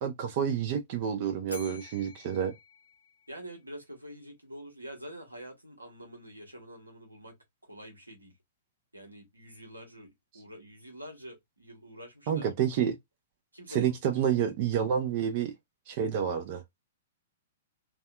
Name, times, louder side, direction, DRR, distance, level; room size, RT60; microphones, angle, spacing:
voice 1, 0.0-2.5 12.3-13.0 13.7-15.5 15.9-16.6, right 8 dB, 40° right, 0.5 m, -29 dB
Bell, 1.5-3.8, left 2 dB, 90° left, 0.7 m, -49 dB
voice 2, 3.3-8.3 8.9-12.5 13.5-14.0, equal, 85° right, 1.0 m, -46 dB
2.5 x 2.4 x 2.2 m
figure-of-eight pair, 110°, 0 cm